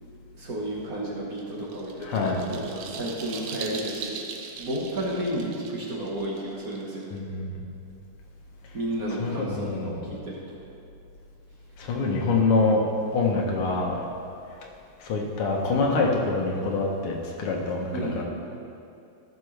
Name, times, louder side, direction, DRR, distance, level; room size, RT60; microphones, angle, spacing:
voice 1, 0.3-4.3 4.6-7.2 8.7-10.6 17.9-18.2, right 1 dB, 45° right, -5 dB, 1.6 m, -32 dB
sound 1, 1.4-7.2, right 5 dB, 65° right, 1.2 m, -40 dB
voice 2, 2.0-2.5 7.1-7.6 9.2-10.0 11.8-12.9 13.1-14.0 15.0-18.2, left 3 dB, 80° left, 0 dB, 2.0 m, -25 dB
14.0 x 6.7 x 3.3 m, 2.6 s
omnidirectional pair, 2.4 m